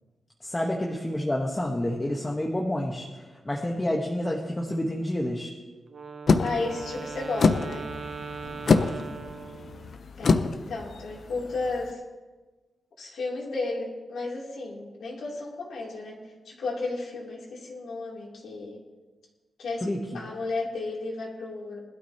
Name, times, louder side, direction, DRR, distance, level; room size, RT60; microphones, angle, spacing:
voice 1, 0.4-5.5 8.6-9.0 19.8-20.0, left 1 dB, 15° left, -1 dB, 1.1 m, -29 dB
Wind instrument woodwind instrument, 5.9-10.0, right 5 dB, 45° right, 0.7 m, -39 dB
sound 1, 6.3-11.9, left 4 dB, 45° left, 0.6 m, -26 dB
voice 2, 6.4-7.9 10.2-12.0 13.0-18.8 19.6-19.8 20.1-21.9, left 3 dB, 75° left, -3 dB, 2.9 m, -33 dB
20.5 x 12.5 x 2.9 m, 1.3 s
wide cardioid pair, 165°, 0 cm